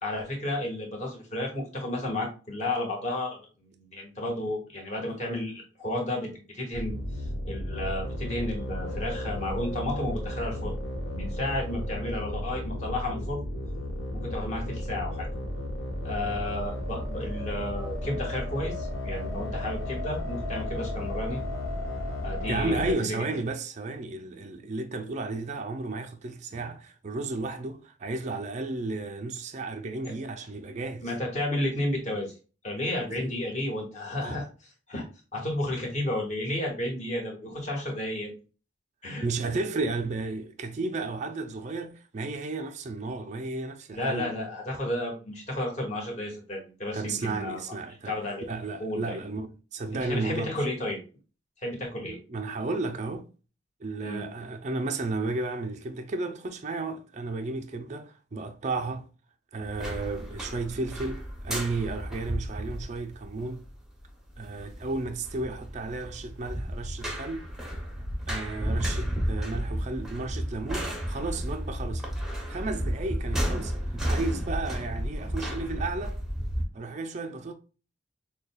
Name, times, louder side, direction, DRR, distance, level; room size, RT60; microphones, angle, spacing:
voice 1, 0.0-10.7 11.1-13.4 14.1-15.3 16.0-21.4 22.2-23.2 31.0-32.3 32.6-35.1 35.3-38.3 39.0-39.2 43.9-47.6 48.1-48.4 48.8-49.2 49.9-51.0 51.6-52.2 54.0-54.2, left 1 dB, 35° left, 1.5 m, -32 dB
sound 1, 6.7-22.9, left 1 dB, 70° left, 1.2 m, -34 dB
voice 2, 22.5-31.1 33.2-33.4 34.2-34.4 39.2-44.3 46.9-48.2 48.5-50.5 52.1-53.3 53.8-59.1 59.5-63.6 64.4-67.5 68.3-72.1 72.4-76.2 76.7-77.5, right 3 dB, 35° right, 0.4 m, -33 dB
sound 2, 59.6-76.6, equal, ahead, 0.7 m, -33 dB
6.4 x 2.2 x 2.2 m
head